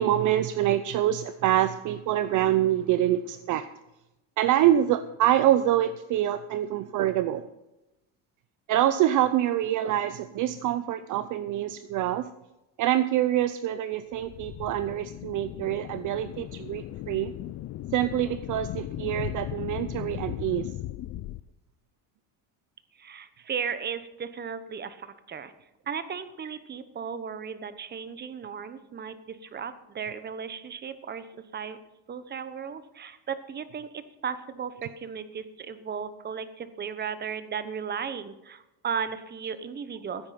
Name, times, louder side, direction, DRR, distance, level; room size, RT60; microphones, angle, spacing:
voice 1, 0.0-3.7 4.4-7.5 8.7-12.3 12.8-17.3 17.9-20.7, right 12 dB, 50° right, 13 dB, 0.6 m, -25 dB
sound 1, 14.1-21.4, left 15 dB, 40° left, 0.5 m, -37 dB
voice 2, 23.0-25.5 25.9-31.3 31.5-31.8 32.1-40.3, right 6 dB, 25° right, 12 dB, 1.0 m, -35 dB
15.5 x 8.9 x 5.8 m, 0.96 s
cardioid pair, 135°, 40 cm